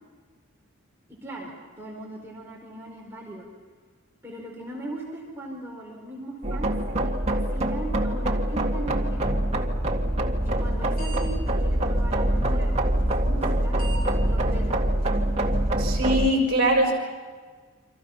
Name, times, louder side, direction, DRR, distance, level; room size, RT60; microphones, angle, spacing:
voice 1, 1.1-3.5 4.2-6.7 7.0-9.4 10.4-13.8 14.2-14.9, right 1 dB, 10° right, -2 dB, 4.4 m, -39 dB
sound 1, 6.4-16.3, right 1 dB, 30° right, 2.2 m, -24 dB
sound 2, 10.5-10.7 11.0-11.2 11.5-11.6 12.5-12.6 13.5-13.6 13.8-14.0 14.5-14.6 15.0-15.1 15.5-15.6, right 3 dB, 45° left, 7.4 m, -38 dB
voice 2, 15.8-16.9, right 1 dB, 50° right, 2 dB, 6.3 m, -22 dB
29.0 x 26.0 x 5.8 m, 1.5 s
head